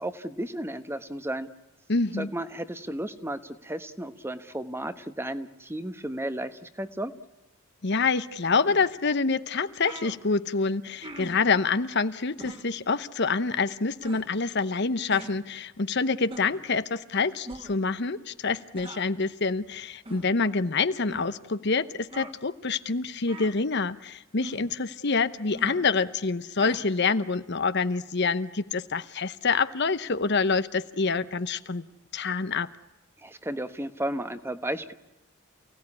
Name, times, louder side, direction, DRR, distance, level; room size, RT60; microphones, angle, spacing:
voice 1, 0.0-1.5 2.2-7.1 33.2-34.9, right 1 dB, 10° right, 1.2 m, -33 dB
voice 2, 1.9-2.3 7.8-31.8 32.1-32.7, left 4 dB, 55° left, 0.9 m, -26 dB
sound 1, 8.7-8.8 9.5-9.6 9.8-10.2 11.0-11.5 12.4-12.7 14.0-14.3 15.1-15.4 16.3-16.6 17.4-17.8 18.7-19.1 20.0-20.3 21.1-21.3 22.1-22.3 23.3-23.6 24.4-24.7 25.5-25.8 26.6-26.8, right 1 dB, 25° right, 2.2 m, -41 dB
28.5 x 17.5 x 9.8 m
head